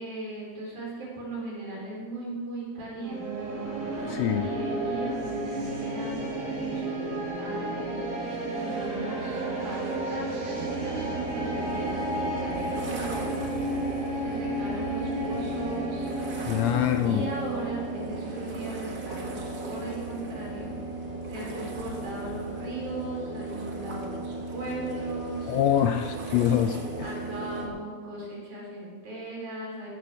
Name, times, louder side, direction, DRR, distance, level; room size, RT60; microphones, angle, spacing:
voice 1, 0.0-3.5 3.9-8.0 8.6-13.5 14.1-16.1 17.0-20.7 21.3-25.5 27.0-29.9, right 1 dB, 80° right, -3 dB, 5.4 m, -38 dB
sound 1, 3.0-21.2, right 1 dB, 55° right, 3.3 m, -33 dB
voice 2, 4.1-4.5 16.5-17.2 25.5-26.8, left 10 dB, 80° left, 7 dB, 1.6 m, -24 dB
sound 2, 10.6-27.7, right 2 dB, 40° right, 1.7 m, -36 dB
17.0 x 12.5 x 3.5 m, 1.5 s
omnidirectional pair, 3.5 m